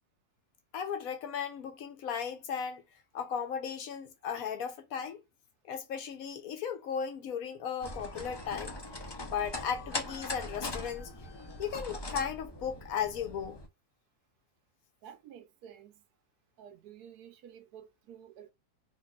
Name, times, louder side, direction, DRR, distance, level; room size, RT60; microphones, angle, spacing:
voice 1, 0.7-2.8 3.1-5.2 5.7-8.8 9.3-11.1 11.6-13.6, left 7 dB, 70° left, 1.0 m, -36 dB
sound 1, 7.8-13.7, left 2 dB, 40° left, 0.3 m, -41 dB
voice 2, 15.0-16.0 16.6-18.5, right 9 dB, 85° right, 1.1 m, -51 dB
4.0 x 2.8 x 2.3 m
omnidirectional pair, 1.6 m